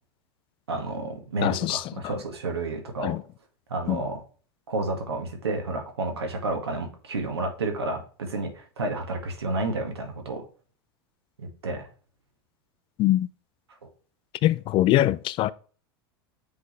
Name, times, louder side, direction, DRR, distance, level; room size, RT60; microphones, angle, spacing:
voice 1, 0.7-3.2 3.7-4.2 4.7-10.4 11.4-11.9, right 2 dB, 90° right, 1.9 m, -30 dB
voice 2, 1.4-2.1 3.0-3.2 3.9-4.0 13.0-13.3 14.4-15.5, left 14 dB, 40° left, 0.4 m, -23 dB
7.6 x 4.0 x 3.2 m
hypercardioid pair, 95°, 13 cm